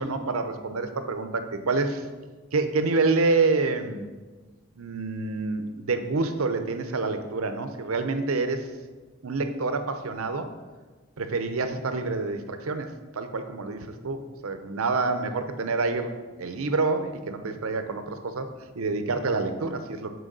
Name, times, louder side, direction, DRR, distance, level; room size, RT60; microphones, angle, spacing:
voice 1, 0.0-2.0 2.5-4.1 4.8-8.7 9.2-10.5 11.2-20.1, right 3 dB, 75° right, 8 dB, 0.7 m, -27 dB
6.3 x 4.6 x 6.7 m, 1.3 s
head